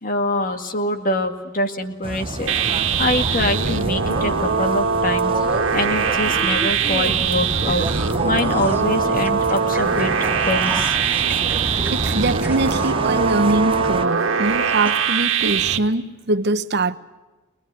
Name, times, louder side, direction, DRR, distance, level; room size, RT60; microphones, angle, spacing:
voice 1, 0.0-5.3 5.7-7.9 8.2-11.0, left 1 dB, 45° left, 2.0 m, -24 dB
sound 1, 2.0-14.1, right 2 dB, 30° right, 0.9 m, -29 dB
sound 2, 2.5-15.8, right 6 dB, 90° right, 1.6 m, -22 dB
sound 3, 7.7-13.9 14.3-14.4 14.9-15.0, right 2 dB, 10° right, 2.5 m, -36 dB
voice 2, 11.9-17.0, right 2 dB, 60° right, 0.9 m, -23 dB
23.5 x 20.0 x 9.4 m
head